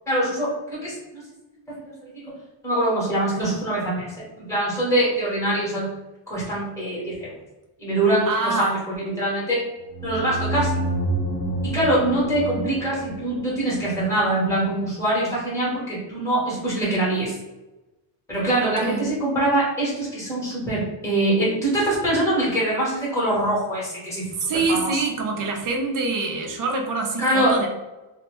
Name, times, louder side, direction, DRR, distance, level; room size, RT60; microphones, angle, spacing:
voice 1, 0.1-1.2 2.0-2.2 2.6-4.1 4.5-5.9 6.3-7.3 7.8-9.6 10.0-10.7 11.6-17.3 18.3-25.0 27.2-27.6, right 1 dB, 5° left, -7 dB, 1.0 m, -23 dB
voice 2, 8.2-8.8 18.5-19.1 24.3-27.7, right 3 dB, 45° right, 1 dB, 0.6 m, -25 dB
sound 1, 9.9-14.4, right 1 dB, 35° left, 0.7 m, -29 dB
2.7 x 2.1 x 3.0 m, 1.1 s
cardioid pair, 180°, 43 cm